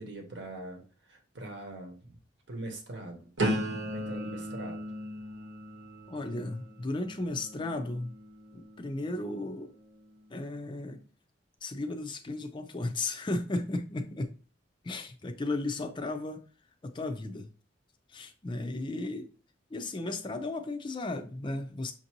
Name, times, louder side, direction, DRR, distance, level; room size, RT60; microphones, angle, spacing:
voice 1, 0.0-2.2 2.5-3.3 3.9-4.8, right 2 dB, 65° right, 1.0 m, -42 dB
sound 1, 3.4-9.2 9.8-10.2, equal, 85° right, 1.1 m, -37 dB
voice 2, 6.1-8.2 8.5-9.7 10.3-11.0 11.6-14.3 14.8-16.4 16.8-17.5 18.1-19.3 19.7-21.9, left 2 dB, 25° left, 0.4 m, -35 dB
5.9 x 2.6 x 2.9 m
head